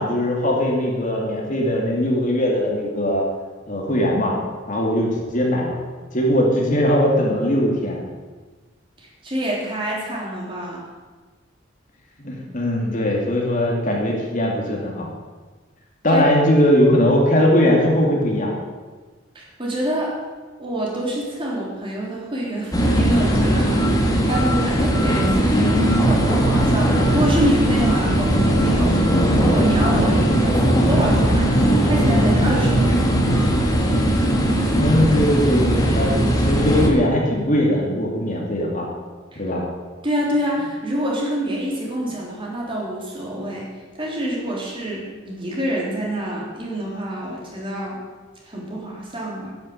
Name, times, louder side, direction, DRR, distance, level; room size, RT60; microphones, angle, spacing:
voice 1, 0.0-3.2 3.7-4.4 4.7-5.8 6.1-8.0 12.2-15.1 16.0-18.5 34.8-38.9 39.4-39.6, equal, 40° left, -1 dB, 2.6 m, -20 dB
voice 2, 9.0-10.9 16.1-16.2 19.4-20.2 20.6-23.8 24.3-33.4 39.3-39.4 40.0-48.0 48.4-49.5, right 1 dB, 25° right, -3 dB, 3.5 m, -26 dB
sound 1, 22.7-36.9, right 1 dB, 20° left, 2.0 m, -18 dB
10.5 x 9.7 x 8.8 m, 1.4 s
head